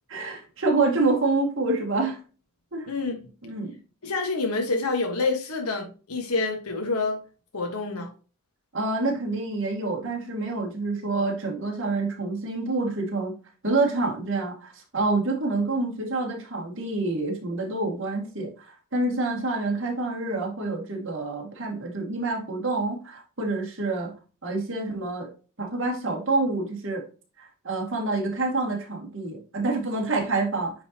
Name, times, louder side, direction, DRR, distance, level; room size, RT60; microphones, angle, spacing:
voice 1, 0.1-2.2 2.7-2.9 3.4-3.8 8.7-13.4 13.6-24.1 24.4-25.3 25.6-27.0 27.4-30.7, right 3 dB, 55° right, 2.2 m, -27 dB
voice 2, 4.0-7.2 7.5-8.1, left 3 dB, 90° left, 1.5 m, -27 dB
9.2 x 4.0 x 2.9 m
head